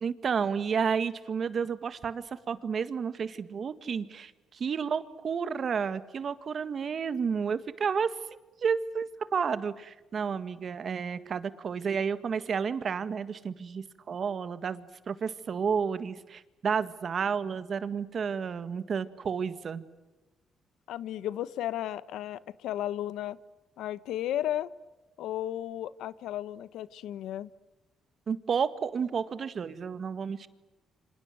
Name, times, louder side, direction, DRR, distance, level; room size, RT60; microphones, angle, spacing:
voice 1, 0.0-8.1 8.6-19.8 28.3-30.5, right 6 dB, 50° right, 12 dB, 1.7 m, -31 dB
voice 2, 20.9-23.4 23.8-24.7 25.2-27.5, left 12 dB, 85° left, 17 dB, 0.9 m, -34 dB
28.5 x 26.0 x 7.8 m, 1.1 s
cardioid pair, 90°, 0 cm